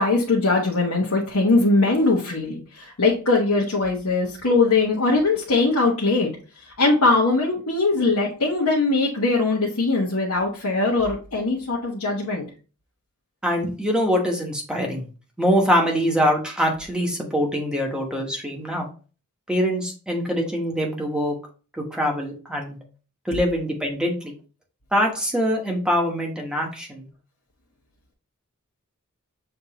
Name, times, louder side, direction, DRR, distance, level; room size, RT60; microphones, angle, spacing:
voice 1, 0.0-6.3 6.6-12.5, left 3 dB, 70° left, -3 dB, 1.0 m, -21 dB
voice 2, 13.4-15.1 15.4-18.9 19.5-21.4 21.7-22.8 23.2-24.3 24.9-27.1, equal, 5° right, 0 dB, 1.0 m, -23 dB
6.7 x 2.6 x 2.8 m, 0.36 s
head